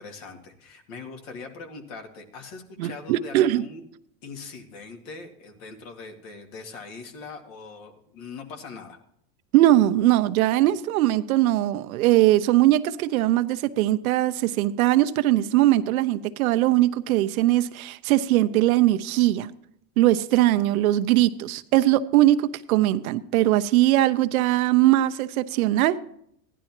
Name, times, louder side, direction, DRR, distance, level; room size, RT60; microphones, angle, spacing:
voice 1, 0.0-3.8 4.2-9.0, left 4 dB, 65° left, 2.3 m, -41 dB
voice 2, 2.8-3.6 9.5-19.5 20.0-26.0, right 15 dB, 75° right, 0.8 m, -20 dB
15.5 x 11.0 x 3.0 m
supercardioid pair, 115°, 43 cm